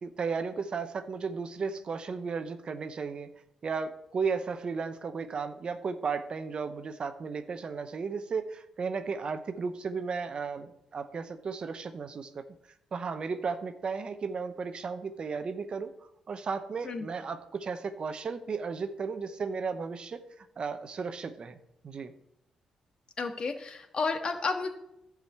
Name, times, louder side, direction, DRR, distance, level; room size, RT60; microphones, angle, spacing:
voice 1, 0.0-3.3 3.6-12.4 12.9-15.9 16.3-21.6 21.8-22.1, right 5 dB, 50° right, 9 dB, 0.8 m, -34 dB
voice 2, 23.2-24.7, left 4 dB, 45° left, 6 dB, 1.5 m, -31 dB
11.5 x 5.0 x 7.9 m, 0.82 s
cardioid pair, 70°, 2 cm